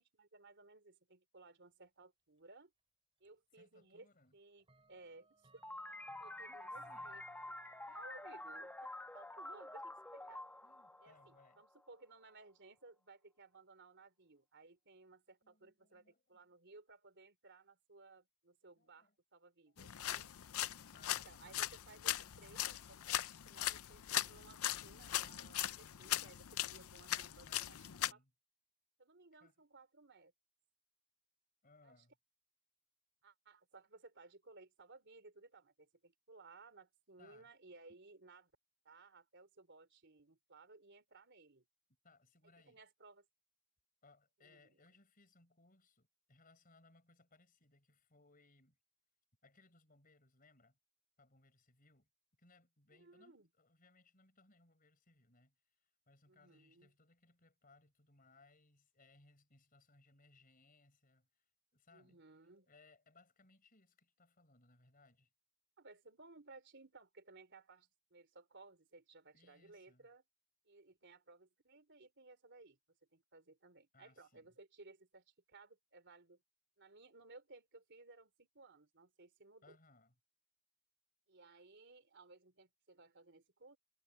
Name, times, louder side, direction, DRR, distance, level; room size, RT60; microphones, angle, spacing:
voice 1, 0.0-2.7 3.2-5.6 6.2-7.2 7.9-10.5 11.0-20.3 21.2-27.8 28.1-28.2 29.0-30.3 31.8-32.0 33.2-38.5 38.8-41.7 42.7-43.3 44.4-44.7 52.9-53.5 56.3-56.9 61.9-62.7 65.8-70.2 70.7-72.8 73.1-76.4 76.8-79.8 81.3-83.8, right 3 dB, 55° right, 3.9 m, -60 dB
Clock, 3.2-3.3 4.6-11.4, right 3 dB, 25° right, 7.2 m, -68 dB
voice 2, 3.5-4.4 6.5-7.1 10.6-11.6 15.4-16.4 18.8-19.1 20.6-21.8 26.3-28.3 29.4-29.5 31.6-32.1 37.2-37.5 42.0-42.8 44.0-48.8 49.4-50.8 51.2-52.1 52.4-61.4 61.7-62.2 62.7-65.3 69.3-70.1 73.9-74.5 79.6-80.1, left 3 dB, 40° left, 5.0 m, -68 dB
sound 1, 5.6-11.9, left 1 dB, 10° left, 1.2 m, -49 dB
sound 2, 19.8-28.1, left 13 dB, 70° left, 0.6 m, -40 dB
head